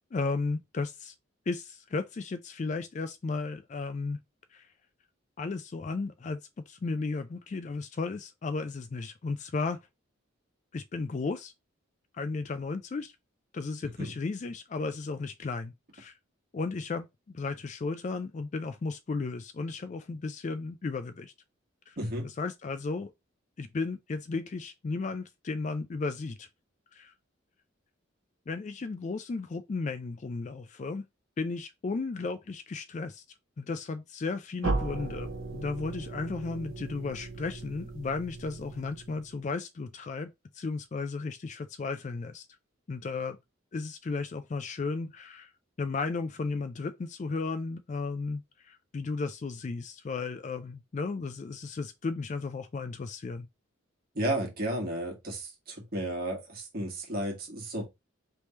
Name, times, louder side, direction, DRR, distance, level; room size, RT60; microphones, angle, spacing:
voice 1, 0.1-1.1 1.5-4.2 4.5-4.7 5.4-6.4 6.7-9.8 10.7-11.5 12.1-13.1 13.5-16.1 16.5-21.3 21.9-22.0 22.2-23.1 23.6-26.5 26.9-27.1 28.5-31.0 31.4-33.2 33.6-42.5 42.9-43.4 43.7-45.5 45.8-53.5, left 4 dB, 35° left, 0.3 m, -34 dB
voice 2, 22.0-22.3 54.1-57.8, right 1 dB, 45° right, 1.5 m, -33 dB
sound 1, 34.6-39.4, right 2 dB, 80° right, 1.0 m, -36 dB
3.4 x 3.2 x 4.1 m
head